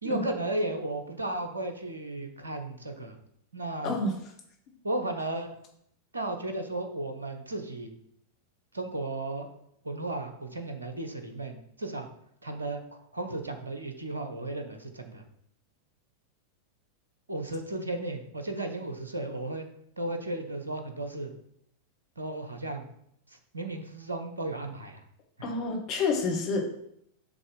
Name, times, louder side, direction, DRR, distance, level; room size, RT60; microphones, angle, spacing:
voice 1, 0.0-3.2 3.5-4.0 4.8-5.5 6.1-7.9 8.7-9.5 9.8-12.1 12.4-12.8 13.1-15.2 17.3-19.7 20.0-21.3 22.2-22.9 23.3-25.0 25.4-25.5, right 2 dB, 80° right, 6 dB, 0.9 m, -34 dB
voice 2, 3.8-4.1 25.4-26.6, left 3 dB, 35° left, 1 dB, 1.4 m, -28 dB
6.3 x 3.4 x 5.1 m, 0.71 s
figure-of-eight pair, 90°, 0 cm